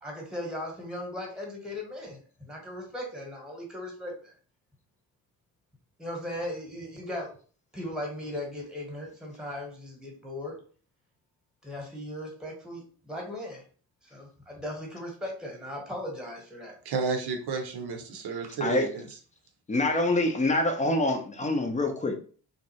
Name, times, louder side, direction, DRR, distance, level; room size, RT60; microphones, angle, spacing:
voice 1, 0.0-4.3 6.0-7.3 7.7-10.6 11.6-13.6 14.0-16.7, left 1 dB, ahead, 0 dB, 1.2 m, -38 dB
voice 2, 16.8-19.1, right 5 dB, 50° right, 4 dB, 0.8 m, -31 dB
voice 3, 19.7-22.3, left 2 dB, 15° left, 5 dB, 0.6 m, -26 dB
2.6 x 2.0 x 2.9 m, 0.42 s
figure-of-eight pair, 40°, 49 cm